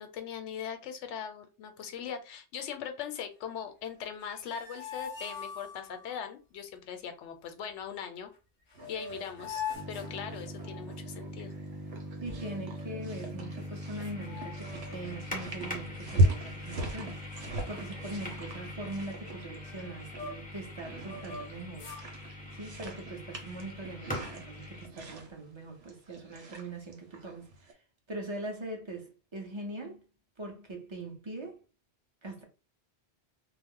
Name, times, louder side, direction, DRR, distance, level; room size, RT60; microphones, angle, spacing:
voice 1, 0.0-8.3 8.9-11.5, left 8 dB, 85° left, 0.9 m, -40 dB
sound 1, 4.1-6.2 8.3-8.4 8.7-10.9 12.3-13.1 13.6-13.7 14.0-15.1 15.4-15.8 16.3-17.0 17.3-17.4 17.7-20.6 21.0-22.1, left 6 dB, 45° left, 0.7 m, -43 dB
sound 2, 8.7-27.7, right 1 dB, 85° right, 1.0 m, -37 dB
sound 3, 9.7-24.9, left 1 dB, 10° left, 0.6 m, -42 dB
voice 2, 12.2-21.9 22.5-27.8 28.1-30.0 30.4-31.6 32.2-32.4, right 2 dB, 30° right, 0.7 m, -42 dB
2.4 x 2.0 x 3.5 m
omnidirectional pair, 1.2 m